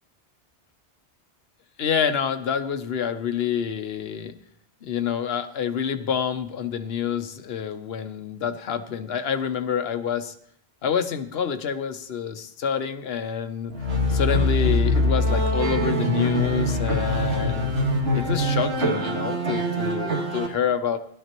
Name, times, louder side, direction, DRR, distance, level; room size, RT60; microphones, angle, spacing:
voice 1, 1.8-4.3 4.8-10.3 10.8-13.7 14.1-17.8 18.1-21.0, left 7 dB, 70° left, 9 dB, 1.0 m, -27 dB
sound 1, 13.7-20.5, left 1 dB, 70° right, 2.7 m, -23 dB
16.5 x 12.0 x 3.0 m, 0.67 s
omnidirectional pair, 1.1 m